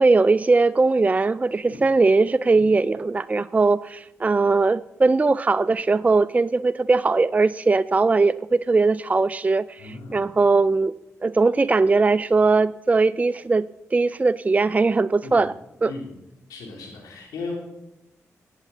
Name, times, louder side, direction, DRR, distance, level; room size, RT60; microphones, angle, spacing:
voice 1, 0.0-10.9 11.2-15.5 15.8-15.9, right 3 dB, 25° right, 0.3 m, -20 dB
voice 2, 9.8-10.3 15.2-15.4 15.9-16.1 16.5-17.6, left 3 dB, 85° left, 3.2 m, -36 dB
17.0 x 8.2 x 4.1 m
supercardioid pair, 40°, 6 cm